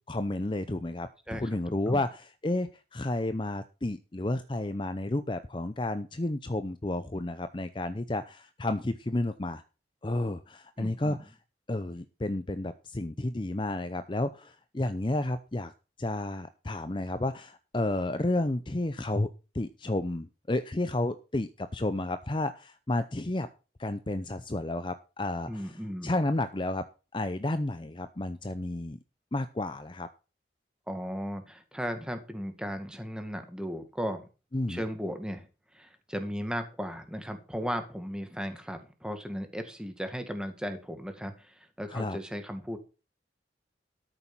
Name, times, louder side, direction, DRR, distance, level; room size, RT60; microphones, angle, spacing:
voice 1, 0.1-9.6 10.0-11.3 11.7-15.7 16.0-19.3 19.5-23.5 23.8-26.9 27.1-29.0 29.3-30.1 34.5-34.8 41.9-42.2, left 2 dB, 25° left, 11 dB, 0.6 m, -31 dB
voice 2, 10.8-11.2 25.5-26.1 30.9-34.3 34.7-35.5 35.7-42.8, equal, 5° right, 7 dB, 2.0 m, -36 dB
13.0 x 6.9 x 6.0 m, 0.33 s
head